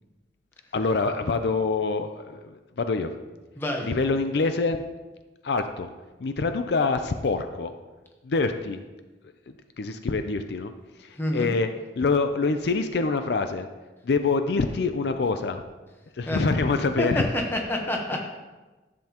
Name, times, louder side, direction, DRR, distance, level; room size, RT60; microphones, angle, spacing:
voice 1, 0.7-3.1 3.8-4.8 5.4-5.9 6.2-7.7 8.2-8.8 9.8-10.7 11.0-11.7 12.0-13.7 14.0-15.6 16.2-17.3, left 4 dB, 65° left, 8 dB, 0.4 m, -25 dB
voice 2, 3.6-3.9 11.2-11.5 16.3-16.4 17.0-18.2, left 1 dB, 10° left, 1 dB, 1.0 m, -27 dB
10.5 x 7.6 x 2.9 m, 1.2 s
head